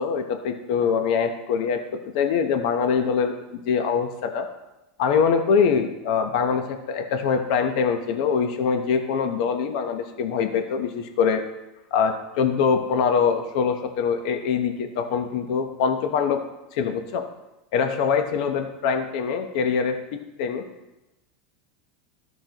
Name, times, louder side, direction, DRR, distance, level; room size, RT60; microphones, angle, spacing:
voice 1, 0.0-1.8 2.1-4.5 5.0-11.4 11.9-16.4 16.7-17.2 17.7-20.0 20.4-20.6, left 6 dB, 65° left, 6 dB, 0.9 m, -23 dB
13.5 x 6.1 x 3.0 m, 0.97 s
supercardioid pair, 150°, 4 cm